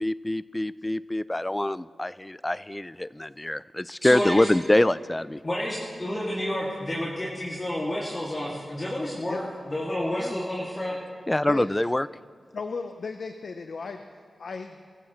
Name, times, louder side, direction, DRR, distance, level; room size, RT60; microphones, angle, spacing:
voice 1, 0.0-5.4 10.2-10.4 11.3-12.1, left 1 dB, 15° left, 18 dB, 0.3 m, -25 dB
voice 2, 4.0-4.5 5.4-11.0, left 1 dB, 35° left, -6 dB, 2.4 m, -30 dB
voice 3, 12.5-14.0 14.4-14.8, left 4 dB, 70° left, 6 dB, 0.7 m, -35 dB
23.0 x 14.5 x 3.2 m, 2.3 s
cardioid pair, 65°, 0 cm